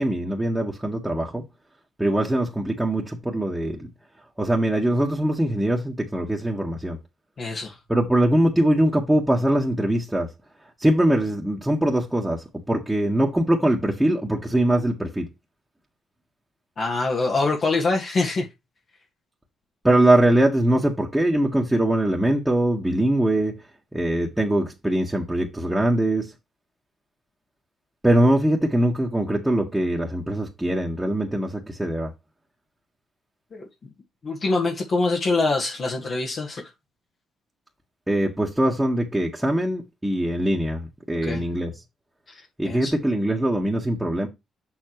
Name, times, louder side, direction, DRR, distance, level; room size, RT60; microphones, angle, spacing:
voice 1, 0.0-1.4 2.0-3.9 4.4-7.0 7.9-10.3 10.8-15.3 19.8-23.6 23.9-26.3 28.0-32.1 38.1-41.7 42.6-44.3, right 1 dB, 5° right, 1.6 m, -22 dB
voice 2, 7.4-7.8 16.8-18.5 33.5-33.7 34.2-36.7 41.3-41.4 42.3-42.9, left 3 dB, 50° left, 1.9 m, -24 dB
7.0 x 6.8 x 3.1 m
cardioid pair, 90°, 0 cm